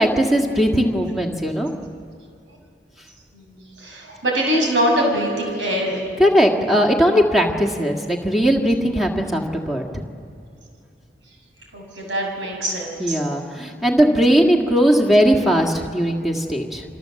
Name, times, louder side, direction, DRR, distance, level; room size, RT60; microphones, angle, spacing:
voice 1, 0.0-1.7 6.2-10.0 13.0-16.8, equal, ahead, -1 dB, 1.9 m, -18 dB
voice 2, 3.3-6.0 11.7-13.2, equal, 90° right, 0 dB, 6.9 m, -23 dB
29.0 x 25.5 x 7.8 m, 2.4 s
head